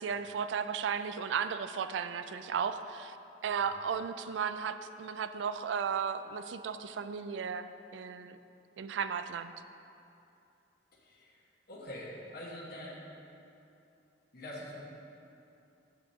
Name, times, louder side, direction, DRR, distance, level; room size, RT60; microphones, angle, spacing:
voice 1, 0.0-3.2 3.4-8.4 8.8-9.5, right 6 dB, 85° right, 11 dB, 0.3 m, -35 dB
voice 2, 10.9-11.4 11.7-13.0 14.3-14.8, left 1 dB, 60° left, -5 dB, 1.4 m, -45 dB
9.5 x 7.6 x 2.8 m, 2.7 s
head